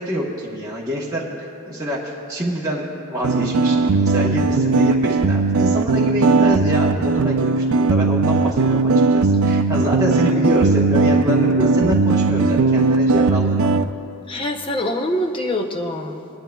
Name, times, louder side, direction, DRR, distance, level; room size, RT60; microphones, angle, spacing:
voice 1, 0.0-13.7, equal, 15° right, -6 dB, 1.1 m, -26 dB
sound 1, 3.2-13.9, right 3 dB, 70° right, 0.4 m, -18 dB
voice 2, 14.3-16.3, left 1 dB, 25° left, 4 dB, 0.6 m, -24 dB
21.5 x 11.0 x 2.3 m, 2.8 s
head